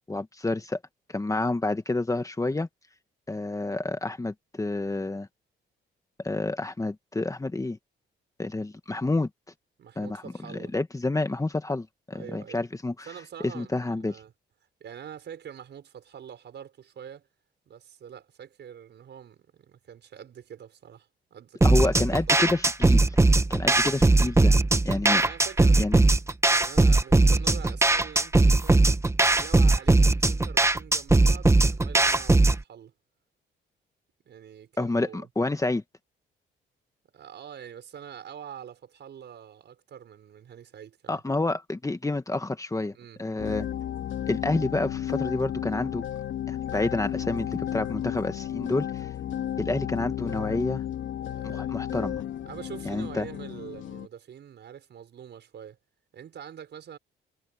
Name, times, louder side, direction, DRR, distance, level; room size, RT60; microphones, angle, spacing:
voice 1, 0.1-0.8 1.1-2.7 3.3-5.3 6.2-7.8 8.4-9.3 10.0-10.2 10.5-13.1 13.4-14.2 21.6-23.2 23.5-24.6 24.9-25.2 25.8-26.0 34.8-35.8 41.1-43.7 44.3-46.0 46.5-49.1 49.6-50.8 51.4-52.2 52.9-53.3, left 2 dB, 15° left, 1.7 m, -29 dB
voice 2, 9.8-10.7 12.1-12.6 13.1-14.3 14.8-17.3 17.7-22.4 23.7-23.9 25.2-25.8 26.5-29.0 29.3-32.9 34.3-35.3 37.1-41.2 42.9-43.2 51.2-51.8 52.5-55.8 56.1-57.0, right 9 dB, 60° right, 5.7 m, -45 dB
sound 1, 21.6-32.6, right 2 dB, 15° right, 1.2 m, -20 dB
sound 2, 43.4-54.1, left 11 dB, 75° left, 2.8 m, -33 dB
cardioid pair, 90°, 20 cm